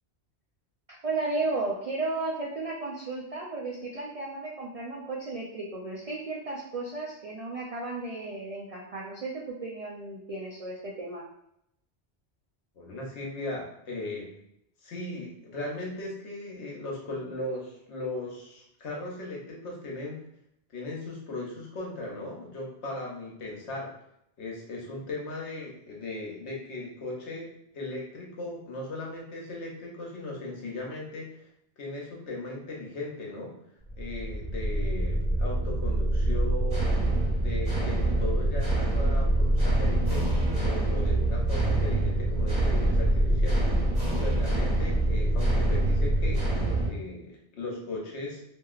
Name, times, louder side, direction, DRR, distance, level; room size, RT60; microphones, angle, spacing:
voice 1, 1.0-11.2, right 3 dB, 60° right, -5 dB, 0.3 m, -34 dB
voice 2, 12.8-14.3 14.8-20.2 20.7-23.9 24.4-31.5 31.8-33.5 34.0-36.9 37.4-40.2 40.6-46.5 46.8-48.4, left 2 dB, 85° left, -2 dB, 1.1 m, -37 dB
sound 1, 33.9-46.9, right 1 dB, 40° right, 1.0 m, -25 dB
2.8 x 2.6 x 2.4 m, 0.76 s
omnidirectional pair, 1.1 m